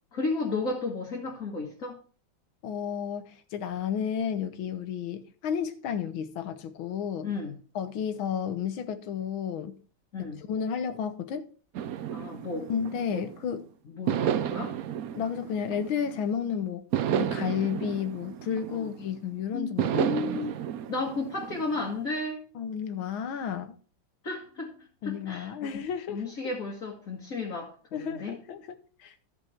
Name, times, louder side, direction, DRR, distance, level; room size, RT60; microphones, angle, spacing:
voice 1, 0.1-2.0 7.2-7.6 10.1-10.4 12.1-12.7 13.1-13.2 13.9-14.8 18.7-18.9 19.5-20.5 20.9-22.4 24.2-24.7 25.0-25.8 26.1-28.4, left 3 dB, 45° left, 2.2 m, -33 dB
voice 2, 2.6-7.3 7.7-9.8 10.2-11.4 12.7-13.6 15.1-16.8 17.1-20.0 22.5-23.7 25.0-26.2 27.9-28.6 29.0-29.1, left 8 dB, 85° left, 1.8 m, -32 dB
sound 1, 11.7-13.5 14.1-16.3 16.9-19.2 19.8-22.0, right 10 dB, 75° right, 0.8 m, -32 dB
13.5 x 5.2 x 4.5 m
omnidirectional pair, 2.2 m